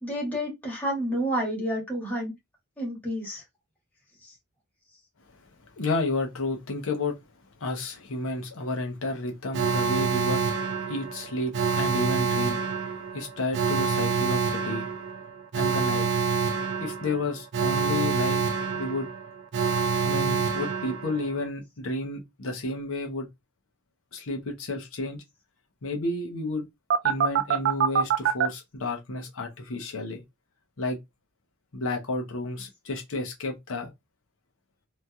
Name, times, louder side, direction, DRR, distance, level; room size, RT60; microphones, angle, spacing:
voice 1, 0.0-2.3 2.8-3.4, equal, 10° left, 1.4 m, -29 dB
voice 2, 5.8-7.2 7.6-10.4 10.9-12.6 13.1-14.9 15.5-16.1 16.8-18.4 18.7-19.1 20.0-23.3 24.1-25.2 25.8-26.7 27.0-30.2 30.8-31.0 31.7-33.9, left 2 dB, 70° left, 0.8 m, -31 dB
Alarm, 9.5-21.4 26.9-28.5, right 6 dB, 60° right, 0.4 m, -26 dB
3.1 x 2.7 x 2.3 m
head